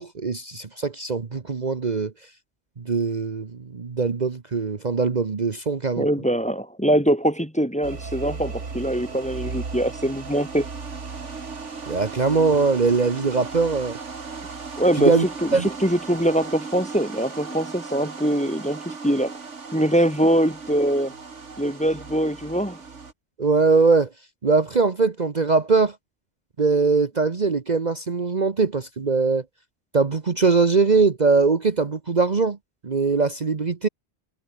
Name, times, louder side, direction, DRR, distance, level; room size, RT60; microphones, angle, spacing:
voice 1, 0.0-2.1 2.8-6.1 11.9-14.0 15.0-15.3 15.5-15.7 23.4-24.1 24.4-26.0 26.6-29.4 29.9-32.6 32.8-33.9, right 4 dB, 40° right, 1.2 m, -21 dB
voice 2, 6.0-10.7 14.8-15.1 15.4-19.3 19.7-21.1 21.6-22.8, right 1 dB, 5° left, 1.6 m, -23 dB
sound 1, 7.8-23.1, right 4 dB, 90° right, 2.5 m, -36 dB
omnidirectional pair, 1.2 m